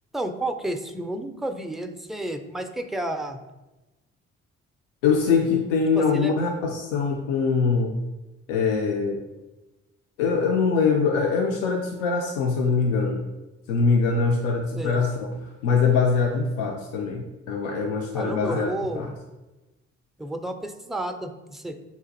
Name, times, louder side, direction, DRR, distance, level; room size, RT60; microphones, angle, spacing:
voice 1, 0.1-3.4 5.9-6.3 14.8-15.0 18.1-19.2 20.2-21.8, right 1 dB, ahead, 7 dB, 0.4 m, -31 dB
voice 2, 5.0-8.0 8.5-9.2 10.2-13.2 13.7-18.7 18.9-19.1, left 5 dB, 80° left, 2 dB, 0.5 m, -23 dB
6.7 x 2.5 x 2.5 m, 1.1 s
hypercardioid pair, 45°, 36 cm